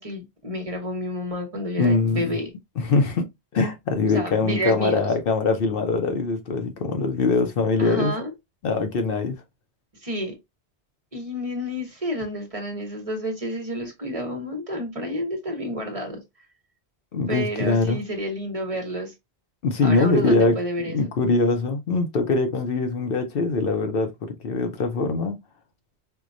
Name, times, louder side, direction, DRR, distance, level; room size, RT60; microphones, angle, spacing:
voice 1, 0.0-2.5 4.1-5.1 7.8-8.3 10.0-10.3 11.1-16.2 17.3-19.1 19.8-21.1, equal, 35° right, 0.9 m, -30 dB
voice 2, 1.8-2.4 2.8-3.3 3.5-8.2 8.6-9.4 17.1-18.0 19.6-20.6 20.9-25.4, left 3 dB, 60° left, 0.8 m, -22 dB
4.5 x 2.2 x 2.5 m
omnidirectional pair, 1.1 m